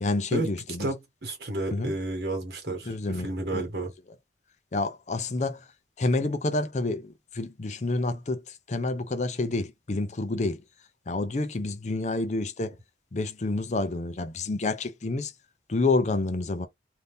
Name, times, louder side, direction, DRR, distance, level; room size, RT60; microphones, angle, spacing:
voice 1, 0.0-0.9 1.7-1.9 2.7-3.7 4.7-5.7 6.0-10.6 11.1-12.7 13.1-15.3 15.7-16.7, left 2 dB, 40° left, 0.5 m, -29 dB
voice 2, 0.8-3.9, right 2 dB, 65° right, 1.3 m, -31 dB
2.7 x 2.6 x 3.5 m
head